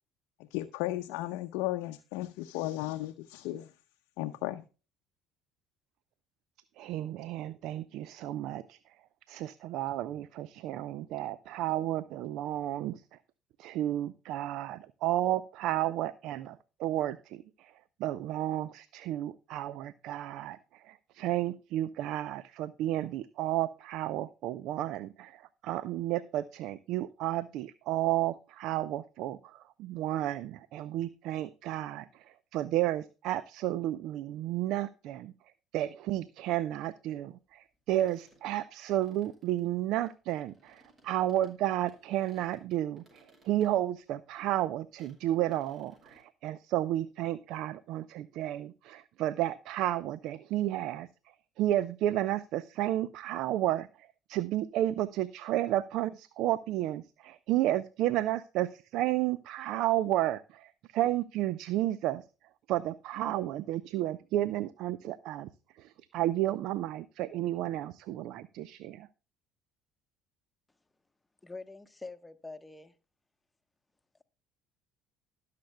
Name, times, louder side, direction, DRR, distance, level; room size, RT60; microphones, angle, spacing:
voice 1, 0.5-3.7 4.2-4.6, left 16 dB, 70° left, 0.6 m, -35 dB
voice 2, 6.8-8.8 9.3-13.2 13.6-17.7 18.0-35.3 35.7-51.1 51.6-62.2 62.7-65.5 65.8-69.1, right 13 dB, 65° right, 0.5 m, -32 dB
sound 1, 37.6-41.6 41.9-43.7 44.0-44.1 44.4-44.5 44.9-45.2 45.5-46.2, right 1 dB, 40° right, 6.6 m, -63 dB
voice 3, 71.4-72.9, left 3 dB, 15° left, 1.1 m, -45 dB
20.0 x 6.7 x 2.2 m
hypercardioid pair, 60°, 0 cm